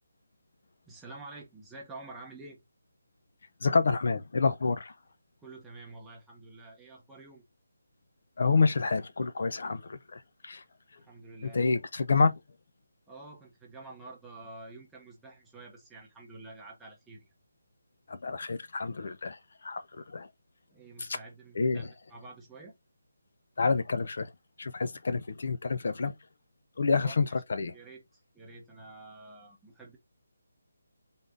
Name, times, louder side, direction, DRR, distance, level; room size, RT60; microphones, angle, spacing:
voice 1, 0.9-2.6 5.4-7.4 11.0-11.6 13.1-17.3 20.7-22.7 26.9-27.2 27.7-30.0, right 2 dB, 5° right, 0.9 m, -48 dB
voice 2, 3.6-4.9 8.4-10.6 11.5-12.3 18.1-20.3 21.0-21.1 21.6-21.9 23.6-24.3 24.6-26.1 26.8-27.7, left 4 dB, 50° left, 0.5 m, -28 dB
4.0 x 3.4 x 3.7 m
hypercardioid pair, 175°, 0 cm